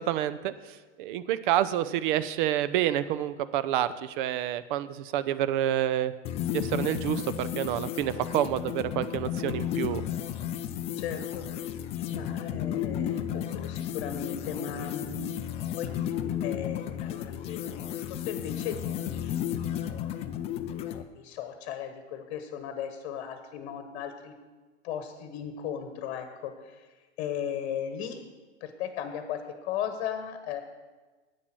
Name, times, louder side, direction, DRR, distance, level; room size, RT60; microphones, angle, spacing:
voice 1, 0.0-6.1 6.5-10.0, right 12 dB, 45° right, 14 dB, 0.6 m, -28 dB
sound 1, 6.3-21.0, left 10 dB, 20° left, 0.4 m, -33 dB
voice 2, 11.0-11.5 12.1-15.4 15.8-15.9 16.4-20.0 21.2-24.3 24.8-26.9 27.2-28.2 28.6-30.6, left 8 dB, 40° left, 7 dB, 1.3 m, -36 dB
9.7 x 8.5 x 6.0 m, 1.3 s
hypercardioid pair, 110°, 37 cm